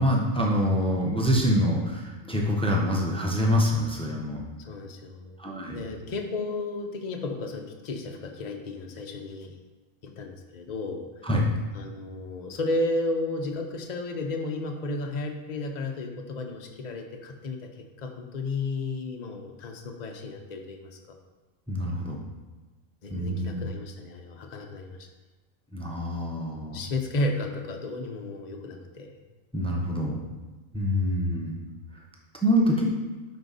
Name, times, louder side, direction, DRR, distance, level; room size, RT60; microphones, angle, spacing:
voice 1, 0.0-4.4 5.4-5.8 11.2-11.5 21.7-22.2 23.1-23.7 25.7-26.8 29.5-30.2 30.7-31.6 32.4-32.9, equal, 5° left, -1 dB, 0.9 m, -25 dB
voice 2, 4.6-5.4 5.7-9.5 10.0-11.3 11.7-20.9 23.0-25.1 26.7-29.2, left 2 dB, 35° left, 3 dB, 0.8 m, -33 dB
11.0 x 4.5 x 4.1 m, 1.2 s
omnidirectional pair, 1.4 m